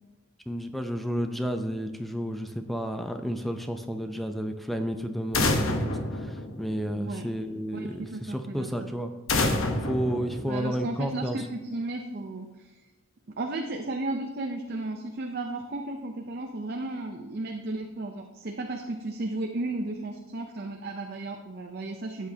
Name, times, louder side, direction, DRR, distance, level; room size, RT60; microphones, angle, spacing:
voice 1, 0.5-9.1 9.8-11.4, equal, ahead, 6 dB, 0.5 m, -31 dB
sound 1, 5.3-7.1 9.3-11.1, left 2 dB, 75° left, 1.0 m, -28 dB
voice 2, 6.9-7.2 7.7-8.9 10.5-12.7 13.4-22.3, right 2 dB, 45° right, 3 dB, 0.6 m, -34 dB
13.5 x 8.3 x 2.8 m, 1.2 s
head